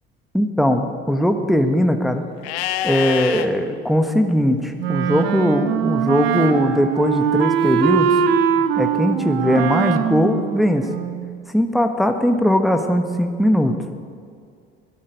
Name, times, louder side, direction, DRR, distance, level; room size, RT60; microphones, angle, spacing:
voice 1, 0.3-2.2 2.8-8.2 8.6-10.9 11.5-13.8, equal, ahead, 6 dB, 1.1 m, -19 dB
Livestock farm animals working animals, 2.4-3.5 6.3-7.3, left 12 dB, 70° left, 0.8 m, -28 dB
Wind instrument woodwind instrument, 4.8-11.4, right 8 dB, 75° right, 0.9 m, -21 dB
15.0 x 12.0 x 5.1 m, 2.2 s
hypercardioid pair, 60°, 31 cm